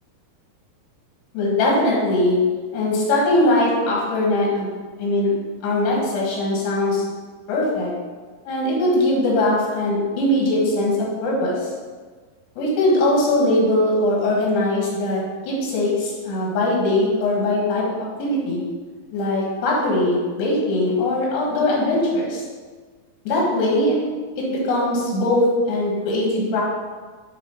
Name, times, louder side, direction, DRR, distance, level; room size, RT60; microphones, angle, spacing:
voice 1, 1.3-2.4 2.7-4.7 5.0-5.3 5.6-7.0 7.5-7.9 8.5-11.7 12.6-18.6 19.1-22.4 23.3-24.0 24.4-26.6, left 1 dB, 85° left, -4 dB, 3.8 m, -21 dB
9.2 x 4.1 x 4.0 m, 1.5 s
omnidirectional pair, 4.7 m